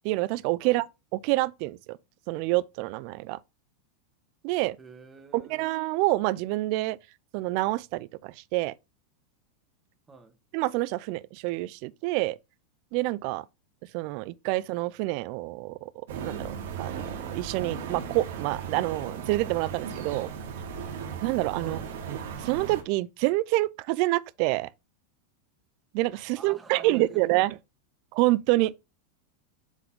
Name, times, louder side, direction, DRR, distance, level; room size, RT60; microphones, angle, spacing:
voice 1, 0.0-0.9 1.1-2.0 2.3-3.4 4.4-4.8 5.3-7.0 7.3-8.7 10.5-12.4 12.9-13.4 13.9-15.9 16.2-20.3 21.2-21.8 22.1-24.7 25.9-27.6 28.1-28.7, right 19 dB, 55° right, 0.4 m, -27 dB
voice 2, 4.8-5.7 10.1-10.4 21.6-21.9 26.3-27.3, right 4 dB, 15° right, 1.6 m, -49 dB
sound 1, 16.1-22.8, right 6 dB, 75° right, 1.9 m, -36 dB
7.2 x 3.9 x 3.6 m
supercardioid pair, 125°, 0 cm